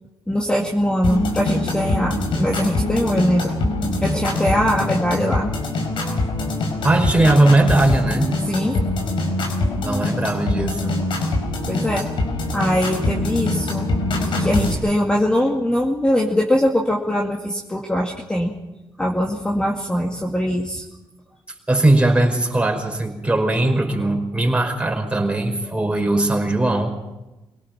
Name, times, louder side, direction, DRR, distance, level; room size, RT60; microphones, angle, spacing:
voice 1, 0.3-3.5 4.0-5.5 8.5-8.8 11.7-12.1 12.5-13.9 14.4-18.5 19.0-20.8, equal, 10° left, -1 dB, 2.2 m, -21 dB
sound 1, 1.0-14.7, left 2 dB, 80° left, 5.1 m, -23 dB
voice 2, 6.8-8.3 9.8-10.9 21.7-26.9, right 2 dB, 15° right, 2 dB, 5.0 m, -19 dB
24.5 x 18.0 x 5.9 m, 1.0 s
cardioid pair, 100°, 8 cm